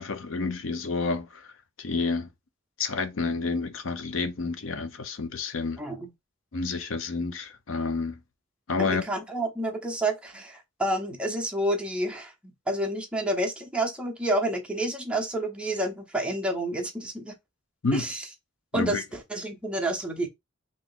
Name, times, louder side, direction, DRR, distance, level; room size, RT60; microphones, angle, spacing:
voice 1, 0.0-1.5 1.8-2.3 2.8-5.8 6.5-8.2 8.7-9.0 17.8-18.1 18.7-19.0, left 4 dB, 75° left, 0.6 m, -29 dB
voice 2, 5.8-6.1 8.8-17.3 17.9-18.3 18.7-20.3, right 1 dB, 5° right, 0.7 m, -29 dB
3.0 x 2.6 x 3.8 m
head